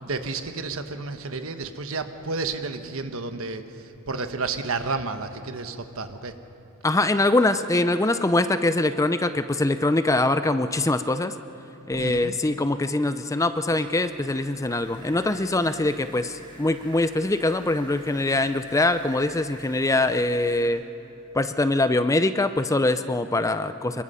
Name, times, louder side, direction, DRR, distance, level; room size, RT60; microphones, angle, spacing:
voice 1, 0.0-6.3 11.9-12.3, right 3 dB, 65° right, 8 dB, 1.3 m, -31 dB
voice 2, 6.8-11.3 11.9-20.8 21.3-24.0, left 2 dB, 15° left, 11 dB, 0.5 m, -23 dB
sound 1, 13.4-20.7, right 1 dB, 20° right, 4.6 m, -47 dB
25.5 x 23.0 x 5.6 m, 2.8 s
head